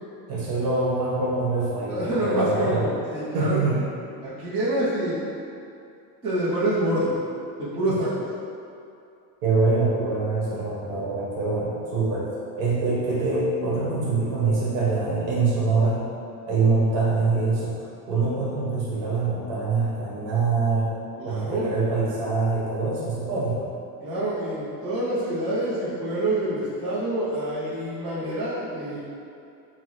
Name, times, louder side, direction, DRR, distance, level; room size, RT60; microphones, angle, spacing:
voice 1, 0.3-2.9 3.3-3.8 9.4-12.3 12.6-16.0 16.5-17.7 18.1-20.9 21.2-23.6, right 3 dB, 55° right, -6 dB, 1.2 m, -24 dB
voice 2, 1.9-3.6 4.2-5.2 6.2-7.1 7.6-8.1 21.2-21.7 24.0-29.0, right 1 dB, 10° right, -13 dB, 0.5 m, -27 dB
5.9 x 2.0 x 3.0 m, 2.6 s
cardioid pair, 175°, 47 cm